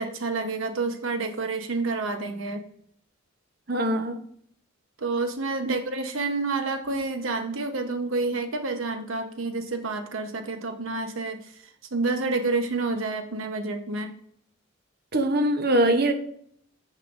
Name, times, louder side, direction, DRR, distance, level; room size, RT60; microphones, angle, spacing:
voice 1, 0.0-2.6 5.0-11.4 11.9-14.1, right 3 dB, 90° right, 7 dB, 1.0 m, -29 dB
voice 2, 3.7-4.2 5.6-5.8 15.1-16.1, right 1 dB, 50° right, 6 dB, 0.9 m, -22 dB
9.4 x 6.6 x 2.6 m, 0.65 s
head